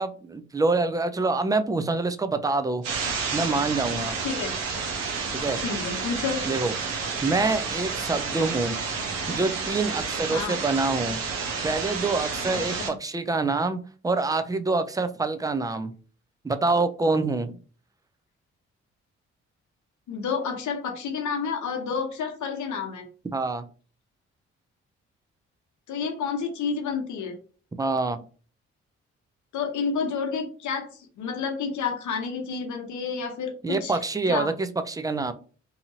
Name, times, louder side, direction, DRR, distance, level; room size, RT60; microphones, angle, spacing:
voice 1, 0.0-2.8 3.3-4.2 5.3-5.6 6.5-6.7 7.2-8.8 9.3-11.2 11.6-13.8 14.0-15.9 16.4-17.5 23.3-23.6 27.8-28.2 33.6-35.3, right 3 dB, 10° right, 10 dB, 0.4 m, -26 dB
sound 1, 2.8-12.9, right 5 dB, 85° right, 0.7 m, -30 dB
voice 2, 5.6-6.4 10.3-10.6 12.5-12.8 20.1-23.1 25.9-27.4 29.5-34.0 34.3-34.5, left 5 dB, 65° left, 4 dB, 0.9 m, -30 dB
2.7 x 2.6 x 2.7 m, 0.39 s
hypercardioid pair, 40°, 32 cm